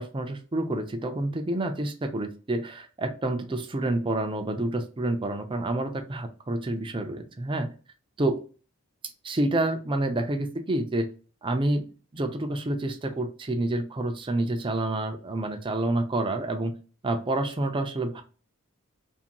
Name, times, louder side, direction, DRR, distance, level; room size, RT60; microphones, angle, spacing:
voice 1, 0.0-7.7 8.2-8.4 9.2-11.1 11.4-11.9 12.1-16.7 17.0-18.2, right 1 dB, 25° right, 5 dB, 0.4 m, -28 dB
2.6 x 2.6 x 2.9 m, 0.36 s
head